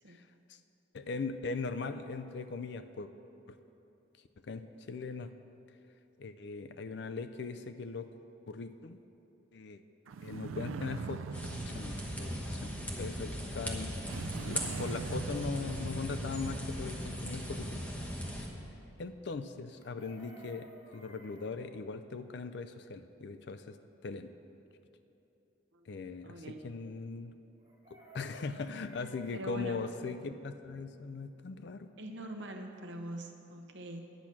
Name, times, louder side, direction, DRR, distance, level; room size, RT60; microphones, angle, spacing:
voice 1, 0.9-3.1 3.5-3.6 4.5-5.3 6.2-8.1 8.5-9.0 9.5-9.8 10.2-11.2 11.6-14.1 14.4-17.8 19.0-23.8 24.0-24.3 25.9-27.3 28.1-31.9, left 4 dB, 55° left, 10 dB, 0.4 m, -40 dB
sound 1, 10.1-13.1 14.0-16.8, right 4 dB, 85° right, 0.4 m, -42 dB
sound 2, 11.3-18.5, equal, 10° left, 1.0 m, -38 dB
Chicken rooster, 19.7-21.5 27.6-29.4 31.7-31.8 32.0-32.3, right 1 dB, 30° right, 2.0 m, -55 dB
voice 2, 26.2-26.7 29.3-29.8 32.0-34.1, right 1 dB, 65° right, 4 dB, 1.0 m, -43 dB
10.5 x 6.1 x 8.5 m, 2.9 s
head